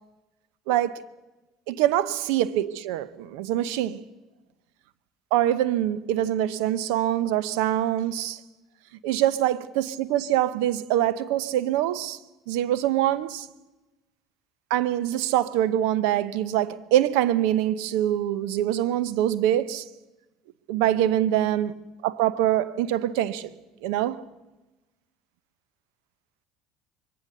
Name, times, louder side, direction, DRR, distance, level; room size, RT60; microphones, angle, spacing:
voice 1, 0.7-1.0 1.7-4.0 5.3-8.4 9.0-12.2 12.5-13.5 14.7-19.8 20.7-21.7 22.0-23.5 23.8-24.2, right 12 dB, 75° right, 0.8 m, -24 dB
22.0 x 18.0 x 6.7 m
hypercardioid pair, 75°, 0 cm